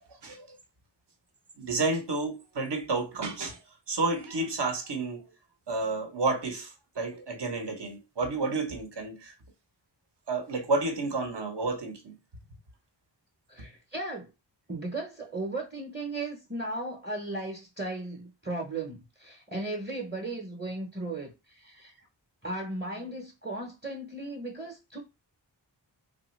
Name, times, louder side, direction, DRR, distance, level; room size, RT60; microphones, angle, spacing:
voice 1, 0.1-0.6 1.6-3.6 3.9-5.3 5.7-9.3 10.3-12.2, right 3 dB, 60° right, 0.9 m, -31 dB
voice 2, 13.5-14.3 14.7-22.1 22.4-25.0, right 2 dB, 20° right, 0.8 m, -36 dB
3.1 x 2.2 x 3.0 m
wide cardioid pair, 50°, 46 cm